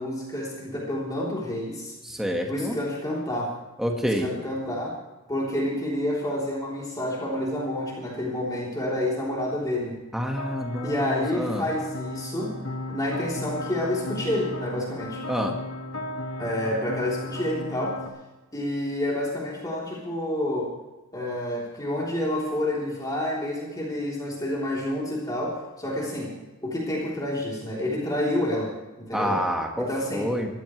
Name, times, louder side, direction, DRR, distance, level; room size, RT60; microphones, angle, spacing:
voice 1, 0.0-1.9 2.5-3.5 4.0-5.0 5.3-10.0 10.8-12.5 12.9-15.2 16.4-18.0 18.5-20.7 21.1-26.3 26.6-29.4 29.8-30.3, left 1 dB, 15° left, -4 dB, 3.4 m, -29 dB
voice 2, 2.1-2.8 3.8-4.3 10.1-11.6 15.3-15.5 29.1-29.9 30.1-30.5, equal, ahead, 1 dB, 1.6 m, -27 dB
sound 1, 10.4-18.1, left 2 dB, 85° left, 1.7 m, -35 dB
21.5 x 14.5 x 3.2 m, 1.1 s
head